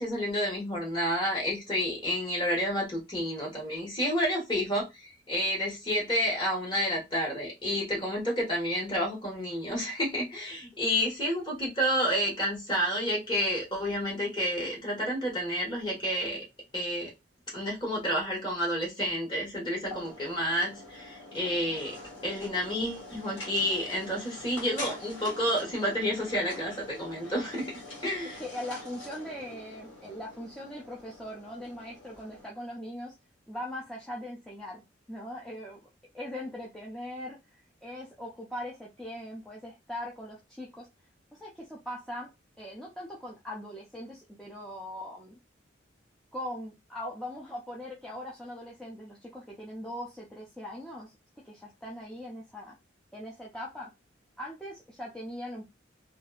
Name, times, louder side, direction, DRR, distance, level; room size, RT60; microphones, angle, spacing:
voice 1, 0.0-16.4 16.7-17.1 17.5-21.9 22.2-27.7 28.0-28.4, equal, 25° left, 1.3 m, -30 dB
sound 1, 19.8-32.5, left 2 dB, 90° left, 1.4 m, -45 dB
voice 2, 28.4-33.2 33.5-34.8 35.1-35.8 36.1-40.9 41.3-42.3 42.6-45.4 46.3-52.7 53.1-53.9 54.4-55.7, left 1 dB, 5° left, 0.4 m, -40 dB
2.6 x 2.4 x 2.3 m
head